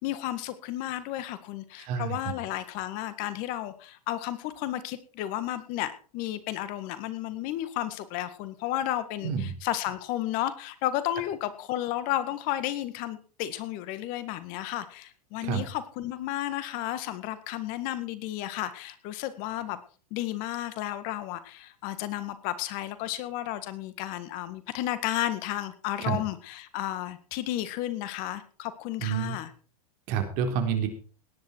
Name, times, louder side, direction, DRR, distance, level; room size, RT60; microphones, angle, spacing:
voice 1, 0.0-9.3 9.6-19.8 20.1-29.5, left 13 dB, 45° left, 13 dB, 1.7 m, -33 dB
voice 2, 1.8-2.3 9.2-9.5 15.4-15.6 26.0-26.2 29.0-29.4 30.1-30.9, right 7 dB, 50° right, 6 dB, 3.9 m, -28 dB
17.5 x 11.0 x 4.6 m, 0.40 s
hypercardioid pair, 100°, 19 cm